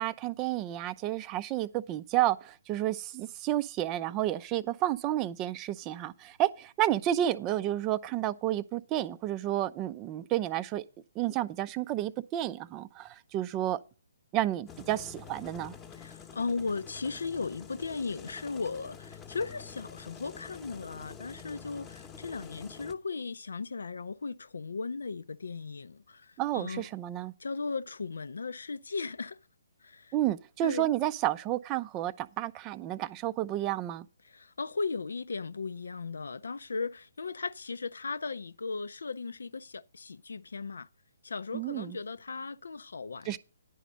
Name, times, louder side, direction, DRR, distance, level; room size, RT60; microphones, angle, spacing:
voice 1, 0.0-10.8 11.2-13.8 14.3-15.7 26.4-27.3 30.1-34.1 41.5-42.0 43.3-43.4, right 13 dB, 25° right, 0.4 m, -31 dB
sound 1, 14.7-22.9, left 7 dB, 15° left, 0.9 m, -48 dB
voice 2, 16.0-26.9 27.4-29.4 29.8-30.1 30.6-30.9 34.2-40.9 41.2-43.4, left 4 dB, 70° left, 0.5 m, -37 dB
10.0 x 5.0 x 6.5 m
figure-of-eight pair, 135°, 0 cm